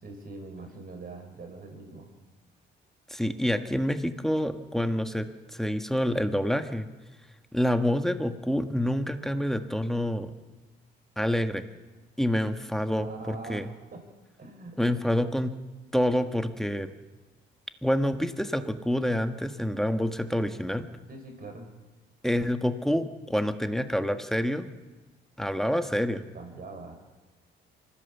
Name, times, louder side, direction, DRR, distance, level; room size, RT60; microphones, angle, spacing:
voice 1, 0.0-2.1 13.0-14.0 14.4-14.8 21.1-21.7 26.3-27.0, right 3 dB, 50° right, 4 dB, 5.2 m, -43 dB
voice 2, 3.1-6.9 7.5-10.3 11.2-11.6 12.2-13.7 14.8-15.5 15.9-16.9 17.8-20.8 22.2-24.7 25.4-26.2, equal, ahead, 7 dB, 1.5 m, -27 dB
24.5 x 15.0 x 7.2 m, 1.2 s
cardioid pair, 90°, 20 cm